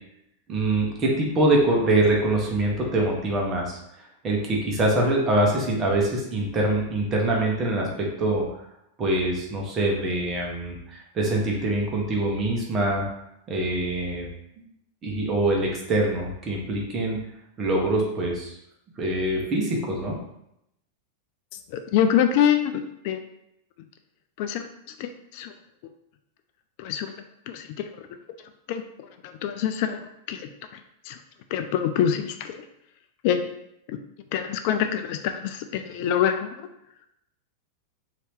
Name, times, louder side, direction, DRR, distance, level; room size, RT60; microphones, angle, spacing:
voice 1, 0.5-3.8 4.2-8.4 9.0-13.0 13.5-14.3 15.0-17.2 17.6-18.6 19.0-20.2, right 1 dB, 30° right, -1 dB, 1.0 m, -24 dB
voice 2, 21.7-23.2 24.4-24.7 25.0-25.5 25.8-25.9 26.8-27.1 27.5-28.1 28.7-28.8 29.2-30.5 31.0-31.2 31.5-32.6 33.2-33.5 33.9-34.0 34.3-36.7, left 9 dB, 55° left, 7 dB, 0.3 m, -25 dB
2.8 x 2.7 x 3.5 m, 0.80 s
hypercardioid pair, 95°, 0 cm